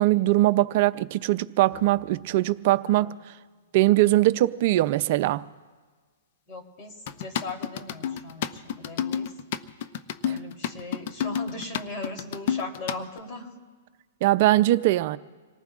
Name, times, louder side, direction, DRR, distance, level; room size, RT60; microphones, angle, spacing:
voice 1, 0.0-3.1 3.7-5.4 14.2-15.2, right 16 dB, 50° right, 0.5 m, -21 dB
sound 1, 1.7-2.1 7.1-13.2, left 9 dB, 55° left, 0.7 m, -30 dB
voice 2, 6.5-9.3 10.2-13.5, left 2 dB, 35° left, 3.4 m, -38 dB
27.0 x 18.5 x 2.5 m
hypercardioid pair, 135°, 0 cm